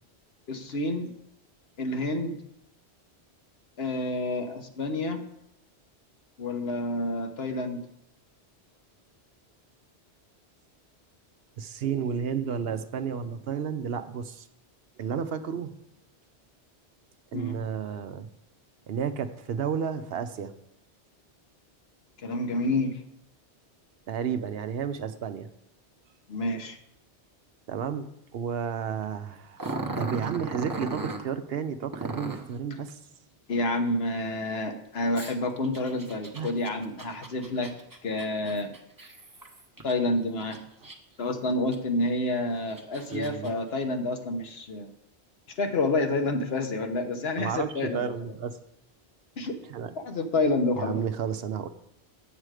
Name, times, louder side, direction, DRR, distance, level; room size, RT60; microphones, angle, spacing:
voice 1, 0.5-1.1 1.8-2.4 3.8-5.2 6.4-7.8 17.3-17.6 22.2-23.0 26.3-26.8 33.5-37.8 38.0-38.7 39.8-40.6 41.2-44.9 45.6-48.1 49.4-49.5 50.0-51.0, left 2 dB, 70° left, 5 dB, 1.2 m, -29 dB
voice 2, 11.6-14.5 15.0-15.7 17.3-18.3 18.9-20.5 24.1-25.5 27.7-33.0 36.3-36.5 40.8-40.9 43.1-43.5 47.4-48.6 49.6-50.0 50.8-51.7, right 7 dB, 65° right, 9 dB, 0.8 m, -32 dB
Growling, 29.6-31.2 31.9-32.5 35.1-39.9 40.4-41.2 41.7-41.8 42.5-43.5, right 3 dB, 20° right, 0.9 m, -37 dB
8.2 x 7.7 x 4.8 m, 0.75 s
omnidirectional pair, 1.1 m